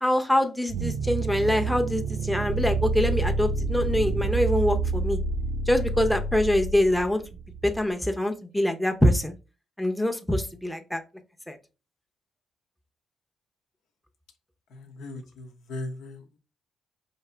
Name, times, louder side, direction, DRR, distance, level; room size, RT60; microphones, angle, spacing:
voice 1, 0.0-5.2 5.7-7.2 7.6-9.4 9.8-11.0 11.5-11.6, left 1 dB, 5° left, 5 dB, 0.6 m, -24 dB
sound 1, 0.7-7.8, right 3 dB, 70° right, 0.6 m, -28 dB
voice 2, 14.7-16.2, left 2 dB, 85° left, 4 dB, 0.9 m, -38 dB
4.7 x 2.8 x 3.3 m, 0.31 s
cardioid pair, 90°, 0 cm